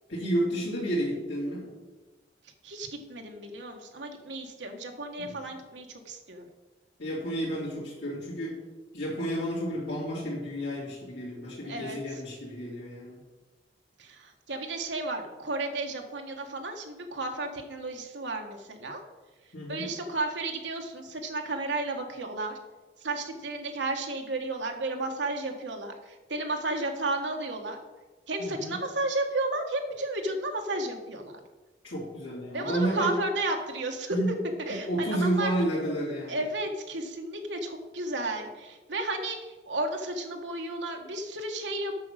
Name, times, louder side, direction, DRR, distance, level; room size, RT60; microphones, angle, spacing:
voice 1, 0.1-1.7 5.2-5.4 7.0-8.6 8.9-13.2 19.5-19.9 28.4-28.8 31.8-33.1 34.1-34.4 34.9-36.4, right 1 dB, 90° left, -9 dB, 2.8 m, -31 dB
voice 2, 2.6-6.5 11.6-12.0 14.0-19.0 19.7-22.5 23.0-27.8 28.3-31.4 32.5-34.2 34.6-35.5 36.3-41.9, right 2 dB, 85° right, 3 dB, 1.4 m, -33 dB
8.3 x 6.2 x 6.4 m, 1.2 s
head